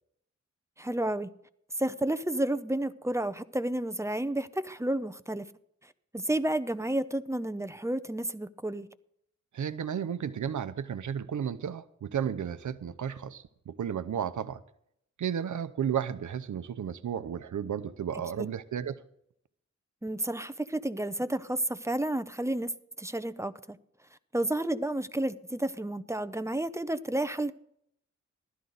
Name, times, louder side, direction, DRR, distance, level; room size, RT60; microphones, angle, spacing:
voice 1, 0.8-1.3 1.8-5.5 6.1-8.9 20.0-22.7 23.0-23.8 24.3-27.5, right 1 dB, 10° right, 0.6 m, -31 dB
voice 2, 9.5-14.6 15.2-19.0, right 8 dB, 80° right, 0.7 m, -33 dB
15.0 x 12.5 x 4.0 m
wide cardioid pair, 85°, 29 cm